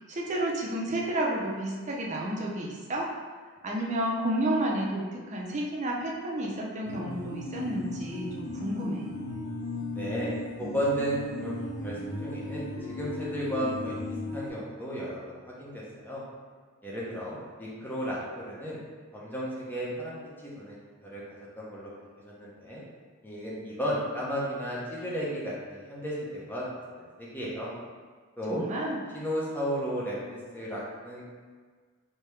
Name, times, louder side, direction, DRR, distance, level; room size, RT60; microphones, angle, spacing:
voice 1, 0.1-3.1 3.6-5.0 5.3-9.0 28.5-29.0, right 1 dB, 35° right, -2 dB, 0.5 m, -31 dB
sound 1, 6.9-14.5, left 2 dB, 55° left, 0.8 m, -36 dB
voice 2, 9.9-10.3 10.6-14.0 14.3-16.2 16.8-18.8 19.1-21.2 21.6-21.9 22.2-22.8 23.2-26.6 27.0-27.7 28.4-28.6 29.1-30.2 30.5-31.2, equal, 10° left, -6 dB, 0.7 m, -34 dB
3.4 x 2.8 x 3.1 m, 1.5 s
head